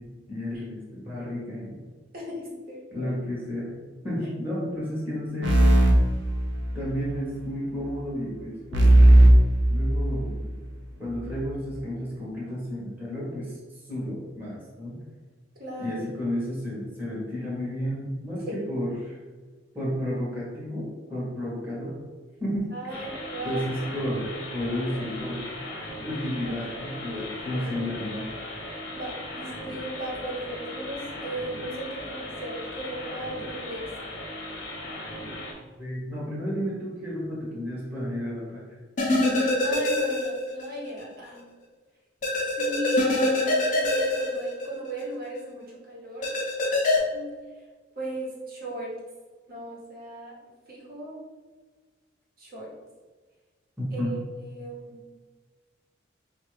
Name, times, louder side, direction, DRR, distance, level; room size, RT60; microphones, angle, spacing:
voice 1, 0.0-1.8 2.9-3.7 4.0-5.6 6.7-9.3 9.7-10.4 11.0-13.6 13.9-15.0 15.8-19.2 19.7-21.9 22.4-23.0 23.4-25.4 26.0-28.3 35.8-38.6 53.8-54.1, equal, 10° right, -7 dB, 1.0 m, -32 dB
voice 2, 2.1-3.1 10.4-10.5 15.6-16.0 18.5-18.6 22.7-23.7 26.4-26.7 27.1-27.2 27.5-27.6 28.9-33.8 39.6-41.4 42.6-46.3 47.1-47.3 48.0-48.9 49.5-50.3 50.7-51.2 52.4-52.7 53.9-55.0, right 1 dB, 50° right, -4 dB, 1.1 m, -36 dB
sound 1, 5.4-7.0 8.7-10.5, right 1 dB, 75° right, 0.7 m, -17 dB
sound 2, 22.9-35.5, left 1 dB, 70° left, 0.9 m, -38 dB
sound 3, 39.0-40.7 41.0-41.1 42.2-45.0 46.2-47.0, left 2 dB, 40° left, 0.7 m, -24 dB
4.9 x 2.4 x 3.2 m, 1.4 s
head